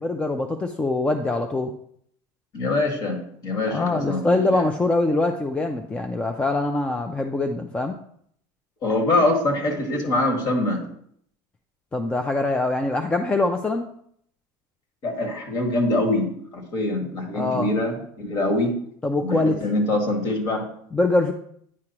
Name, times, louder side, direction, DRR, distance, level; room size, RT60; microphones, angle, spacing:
voice 1, 0.0-1.7 3.7-8.0 11.9-13.9 17.3-17.7 19.0-19.5 20.9-21.3, left 2 dB, 10° left, 5 dB, 0.4 m, -23 dB
voice 2, 2.5-4.7 8.8-10.9 15.0-18.7 19.2-20.7, left 2 dB, 45° left, 3 dB, 1.8 m, -24 dB
9.6 x 4.7 x 2.9 m, 0.66 s
supercardioid pair, 135°, 10 cm